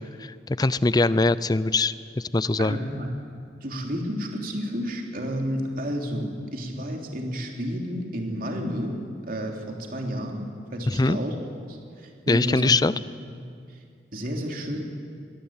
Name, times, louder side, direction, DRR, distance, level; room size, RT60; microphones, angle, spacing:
voice 1, 0.0-2.8 10.9-11.2 12.3-12.9, left 3 dB, 25° left, 17 dB, 0.5 m, -22 dB
voice 2, 2.6-3.1 3.6-9.0 9.3-10.4 10.7-11.3 11.7-12.7 14.1-14.8, equal, 55° right, 2 dB, 3.2 m, -31 dB
22.0 x 19.0 x 8.9 m, 2.3 s
head